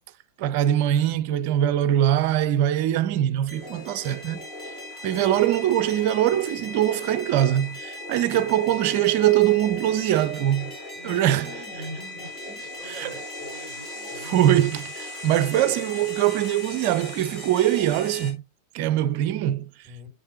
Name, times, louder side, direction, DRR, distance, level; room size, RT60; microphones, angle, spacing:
voice 1, 0.4-4.4 5.0-10.7 11.0-11.5 12.9-13.2 14.2-18.4 18.7-19.7, right 12 dB, 45° right, 0.5 m, -22 dB
sound 1, 3.5-18.3, left 1 dB, 30° left, 4.5 m, -38 dB
voice 2, 11.0-14.6 19.8-20.1, right 1 dB, 5° right, 3.5 m, -43 dB
7.4 x 6.5 x 3.0 m
figure-of-eight pair, 90°, 0 cm